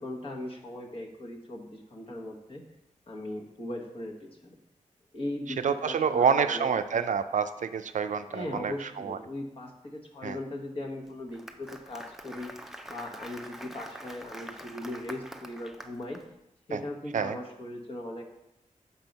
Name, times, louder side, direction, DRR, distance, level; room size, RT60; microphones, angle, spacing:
voice 1, 0.0-2.6 3.1-4.5 5.1-7.1 8.3-12.5 12.9-16.2 16.7-18.3, left 1 dB, 45° left, -1 dB, 1.3 m, -39 dB
voice 2, 5.6-9.2 10.2-10.4 16.7-16.8 17.1-17.4, right 6 dB, 70° right, 10 dB, 0.4 m, -27 dB
Applause, 11.1-16.2, right 1 dB, 5° right, 0.5 m, -45 dB
5.7 x 4.5 x 5.3 m, 0.89 s
wide cardioid pair, 90°, 13 cm